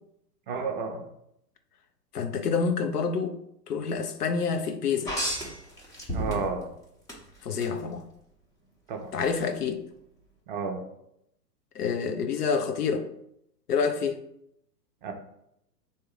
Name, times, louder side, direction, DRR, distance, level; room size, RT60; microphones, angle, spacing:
voice 1, 0.5-1.0 6.1-6.7 8.9-9.1 10.5-10.8 15.0-15.1, right 4 dB, 35° right, 4 dB, 0.5 m, -31 dB
voice 2, 2.1-3.4 3.7-5.1 7.4-8.0 9.1-9.8 11.7-13.1 13.7-14.2, left 5 dB, 70° left, 7 dB, 0.8 m, -27 dB
sound 1, 5.0-6.7 7.1-7.7 9.3-9.4, right 1 dB, 5° left, 0.7 m, -31 dB
3.5 x 2.8 x 4.8 m, 0.76 s
figure-of-eight pair, 115°, 49 cm